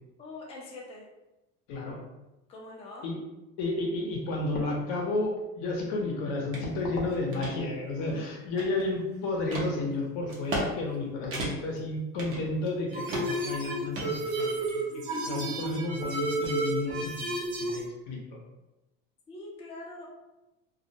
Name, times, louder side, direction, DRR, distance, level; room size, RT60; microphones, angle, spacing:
voice 1, 0.2-1.0 2.5-3.1 19.3-20.1, left 2 dB, 20° left, -3 dB, 0.5 m, -43 dB
voice 2, 1.7-2.0 3.0-3.2 3.6-17.3 17.6-18.4, left 2 dB, 70° left, -1 dB, 0.8 m, -32 dB
sound 1, 6.5-6.7 7.1-7.5 8.1-9.0 9.5-9.7 10.3-10.7 10.9-11.0 11.3-11.8 12.2-12.8 13.1-13.5 13.9-14.7, right 2 dB, 40° right, 0.7 m, -35 dB
sound 2, 12.9-17.8, right 2 dB, 75° right, 0.9 m, -32 dB
2.3 x 2.1 x 2.7 m, 0.98 s
cardioid pair, 125°, 32 cm